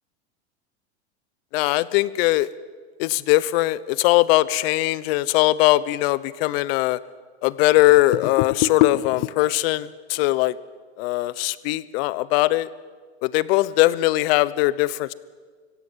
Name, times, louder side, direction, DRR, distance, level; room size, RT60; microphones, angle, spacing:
voice 1, 1.5-2.5 3.0-7.0 7.4-10.6 11.0-12.7 13.2-15.1, left 17 dB, 60° left, 19 dB, 1.0 m, -20 dB
25.0 x 16.5 x 7.5 m, 1.5 s
hypercardioid pair, 95°, 34 cm